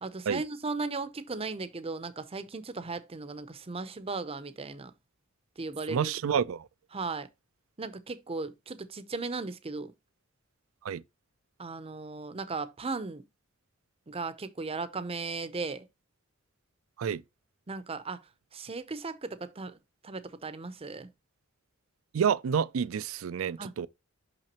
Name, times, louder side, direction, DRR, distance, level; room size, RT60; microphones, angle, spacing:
voice 1, 0.0-4.9 5.6-6.1 6.9-7.3 7.8-9.9 11.6-13.2 14.1-15.9 17.7-18.2 18.5-19.8 20.0-21.1 23.6-23.9, right 3 dB, 30° right, 0.6 m, -36 dB
voice 2, 5.9-6.7 10.8-11.0 17.0-17.2 22.1-23.9, right 7 dB, 70° right, 0.4 m, -29 dB
6.0 x 5.7 x 2.9 m
head